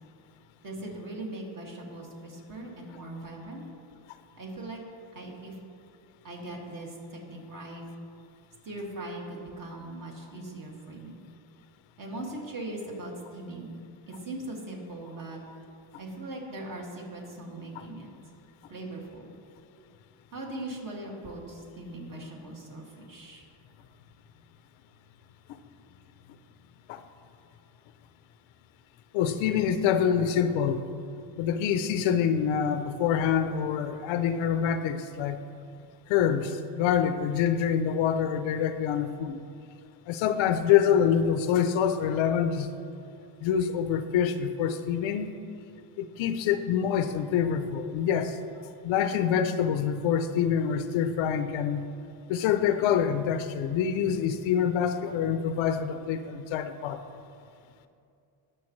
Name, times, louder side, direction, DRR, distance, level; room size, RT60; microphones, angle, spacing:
voice 1, 0.6-3.7 4.4-4.8 5.1-5.6 6.2-7.9 8.6-11.2 12.0-15.4 16.0-18.1 18.7-19.3 20.3-23.4, right 1 dB, 45° right, -2 dB, 2.3 m, -40 dB
voice 2, 29.1-30.9 31.4-35.4 36.1-39.4 40.1-42.7 43.4-45.3 46.0-48.4 48.8-51.9 52.3-57.1, left 8 dB, 75° left, 10 dB, 0.7 m, -26 dB
19.5 x 6.8 x 3.2 m, 2.5 s
cardioid pair, 125°, 46 cm